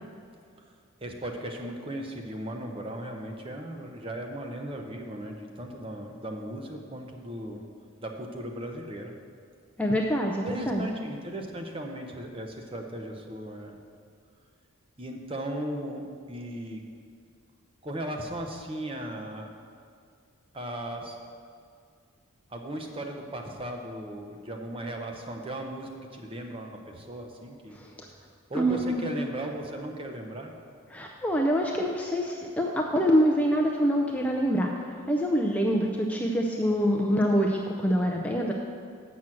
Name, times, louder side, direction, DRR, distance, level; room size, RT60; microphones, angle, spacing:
voice 1, 1.0-7.6 8.0-9.1 10.4-13.8 15.0-16.8 17.8-19.6 20.5-21.2 22.5-27.8 28.5-30.5, right 1 dB, 25° right, 3 dB, 0.7 m, -37 dB
voice 2, 9.8-10.8 28.5-29.2 30.9-34.7 35.1-38.5, equal, 5° left, -1 dB, 0.4 m, -25 dB
7.2 x 6.1 x 7.6 m, 2.2 s
head